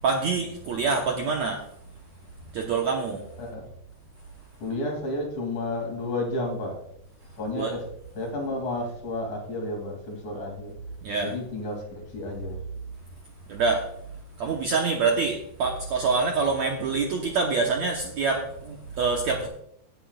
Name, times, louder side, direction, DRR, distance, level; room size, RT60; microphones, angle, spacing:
voice 1, 0.0-1.6 2.5-3.2 7.6-7.8 11.0-11.3 13.5-13.8 14.4-19.5, right 4 dB, 70° right, 1 dB, 1.8 m, -26 dB
voice 2, 3.4-3.7 4.6-6.8 7.4-7.8 8.2-10.8 11.2-12.6, left 2 dB, 50° left, 1 dB, 3.9 m, -31 dB
18.0 x 9.7 x 2.4 m, 0.71 s
omnidirectional pair, 4.5 m